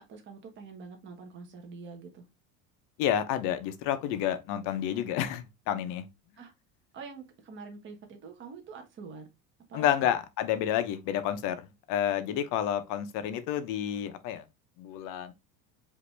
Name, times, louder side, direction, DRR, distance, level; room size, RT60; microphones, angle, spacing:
voice 1, 0.0-2.3 6.4-6.5 6.9-9.3 9.7-10.1, right 5 dB, 30° right, 1.2 m, -45 dB
voice 2, 3.0-6.1 9.7-14.4 14.8-15.3, left 10 dB, 55° left, 0.8 m, -30 dB
5.1 x 2.8 x 3.3 m
cardioid pair, 155°, 39 cm